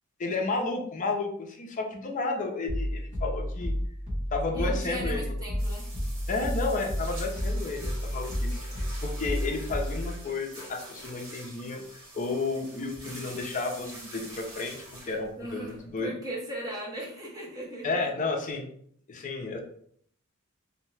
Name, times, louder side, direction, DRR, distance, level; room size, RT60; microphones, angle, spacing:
voice 1, 0.2-3.7 4.3-5.3 6.3-16.1 17.8-18.7 19.1-19.6, left 3 dB, 35° left, 2 dB, 0.5 m, -32 dB
sound 1, 2.7-10.2, equal, 50° right, 1.2 m, -31 dB
voice 2, 4.5-5.9 15.4-17.9, right 1 dB, 15° right, -4 dB, 0.8 m, -37 dB
sound 2, 5.6-16.0, right 1 dB, 70° right, 1.4 m, -46 dB
2.7 x 2.1 x 3.2 m, 0.63 s
head